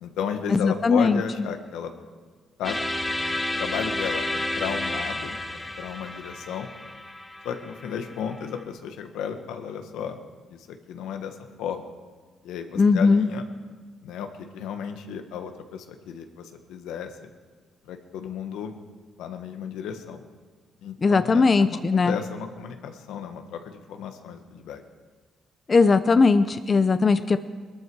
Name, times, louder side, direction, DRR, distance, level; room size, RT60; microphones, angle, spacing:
voice 1, 0.0-1.9 2.6-2.8 3.6-5.4 5.8-6.7 7.4-10.2 10.5-11.9 12.4-13.5 14.0-17.3 17.8-18.7 19.2-20.2 20.8-24.8, left 7 dB, 90° left, 6 dB, 1.4 m, -34 dB
voice 2, 0.5-1.2 12.8-13.3 21.0-22.1 25.7-27.4, left 4 dB, 35° left, 11 dB, 0.6 m, -19 dB
sound 1, 2.6-8.6, left 1 dB, 15° left, 1.6 m, -31 dB
21.5 x 13.0 x 4.8 m, 1.5 s
cardioid pair, 90°, 0 cm